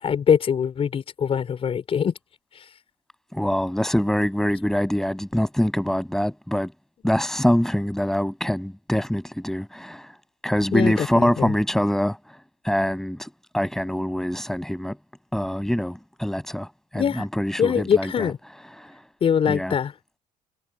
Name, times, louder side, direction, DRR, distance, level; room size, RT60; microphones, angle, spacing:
voice 1, 0.0-2.1 2.6-2.7 10.7-11.5 16.9-17.3 17.6-18.4 19.2-19.9, left 7 dB, 35° left, 5.3 m, -23 dB
voice 2, 3.3-6.7 7.0-10.1 10.4-12.2 12.6-15.0 15.3-16.7 16.9-18.8 19.5-19.8, equal, 5° left, 7.3 m, -24 dB
cardioid pair, 120°, 16 cm